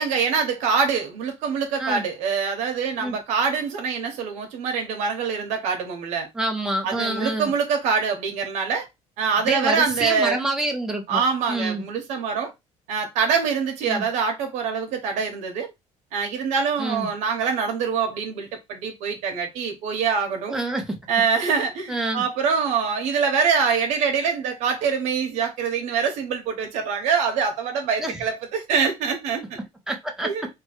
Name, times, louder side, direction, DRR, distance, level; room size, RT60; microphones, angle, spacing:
voice 1, 0.0-6.3 6.8-8.9 9.2-10.4 11.1-12.5 12.9-15.7 16.1-20.6 21.1-29.6 30.2-30.5, right 5 dB, 70° right, 1.0 m, -24 dB
voice 2, 6.3-7.5 9.5-11.2 11.5-11.8 13.9-14.1 16.8-17.1 20.5-21.0 21.9-22.3 28.0-28.2 29.9-30.3, right 1 dB, 5° right, 0.7 m, -27 dB
3.0 x 2.3 x 4.2 m
cardioid pair, 180°, 13 cm